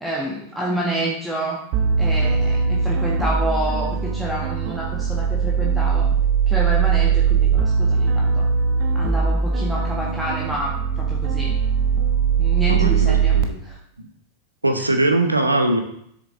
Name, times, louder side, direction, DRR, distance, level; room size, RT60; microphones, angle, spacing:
voice 1, 0.0-1.6 2.0-6.1 6.5-8.5 8.9-11.5 12.4-13.4 13.6-13.8, right 1 dB, 5° right, -4 dB, 1.4 m, -28 dB
sound 1, 1.7-13.4, right 6 dB, 45° right, 1.0 m, -20 dB
voice 2, 12.7-13.6 14.0-14.1 14.6-15.8, right 2 dB, 85° right, 5 dB, 0.9 m, -21 dB
7.8 x 6.8 x 3.7 m, 0.70 s
figure-of-eight pair, 90°, 0 cm